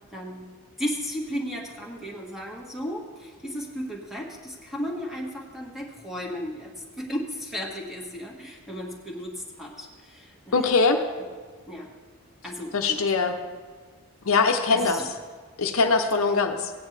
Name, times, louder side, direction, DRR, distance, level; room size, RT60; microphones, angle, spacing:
voice 1, 0.1-0.5 0.8-10.5 11.2-11.3 11.7-11.9 12.4-13.0 14.7-15.1, equal, ahead, -2 dB, 1.5 m, -34 dB
voice 2, 10.5-11.0 12.7-13.3 14.2-15.0 15.6-16.7, left 4 dB, 65° left, 5 dB, 0.7 m, -22 dB
16.5 x 9.3 x 3.3 m, 1.5 s
head